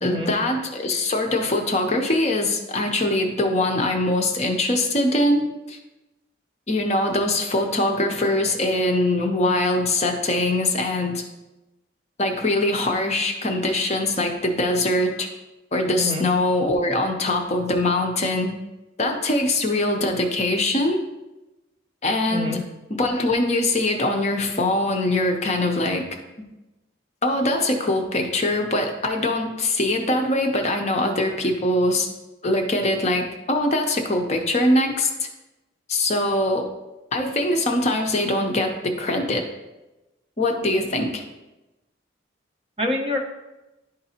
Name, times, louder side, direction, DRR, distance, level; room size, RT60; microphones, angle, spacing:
voice 1, 0.0-5.8 6.7-11.2 12.2-15.3 15.7-18.5 19.0-21.0 22.0-22.6 22.9-26.1 27.2-32.1 32.4-35.3 35.9-36.7 37.1-39.4 40.4-41.2, left 1 dB, 35° left, 3 dB, 0.6 m, -22 dB
voice 2, 42.8-43.2, left 2 dB, 30° right, 1 dB, 0.8 m, -26 dB
11.0 x 3.9 x 2.8 m, 1.0 s
head